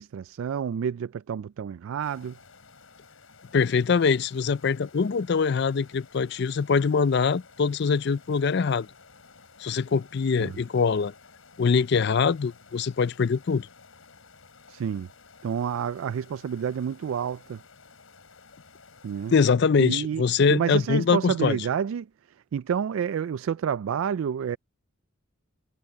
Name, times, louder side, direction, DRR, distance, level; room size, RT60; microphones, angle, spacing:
voice 1, 0.0-2.4 10.4-10.6 14.7-15.1 15.4-17.6 19.0-19.3 19.8-20.2 20.5-24.6, right 7 dB, 75° right, 0.3 m, -29 dB
sound 1, 2.0-19.3, left 4 dB, 85° left, 3.9 m, -53 dB
voice 2, 3.5-8.9 9.6-11.1 11.6-13.7 19.3-21.6, left 5 dB, 55° left, 0.4 m, -23 dB
head